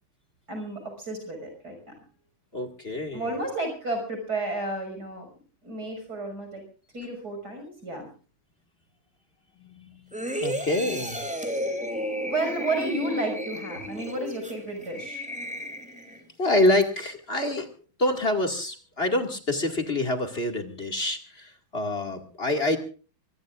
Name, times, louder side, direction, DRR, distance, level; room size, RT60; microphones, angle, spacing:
voice 1, 0.5-1.8 3.1-5.3 5.6-6.6 6.9-8.1 12.2-15.2, right 2 dB, 50° right, 4 dB, 6.6 m, -32 dB
voice 2, 2.5-3.4 9.6-10.1 10.4-11.2 16.4-17.7 18.0-22.8, left 1 dB, 30° left, 5 dB, 2.3 m, -26 dB
sound 1, 10.1-16.2 16.7-16.8, equal, 5° right, 2.9 m, -33 dB
24.5 x 21.0 x 2.5 m, 0.38 s
omnidirectional pair, 2.2 m